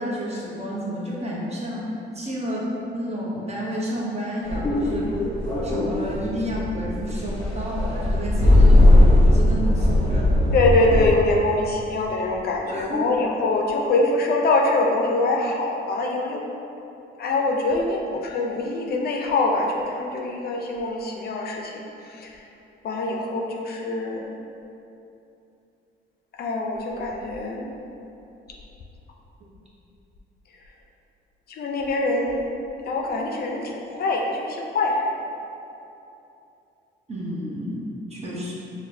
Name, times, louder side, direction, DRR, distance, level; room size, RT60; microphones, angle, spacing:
voice 1, 0.0-1.8 2.1-2.6 2.9-5.1 5.6-10.5 12.6-13.2 37.1-38.5, equal, 30° right, -5 dB, 0.8 m, -31 dB
sound 1, 4.4-11.1, left 1 dB, 25° left, 1.1 m, -18 dB
voice 2, 10.5-16.4 17.2-22.3 22.8-24.2 26.4-27.7 31.5-32.5 32.9-35.1, left 2 dB, 55° left, 0 dB, 0.4 m, -24 dB
4.4 x 2.1 x 2.6 m, 2.8 s
cardioid pair, 90°, 20 cm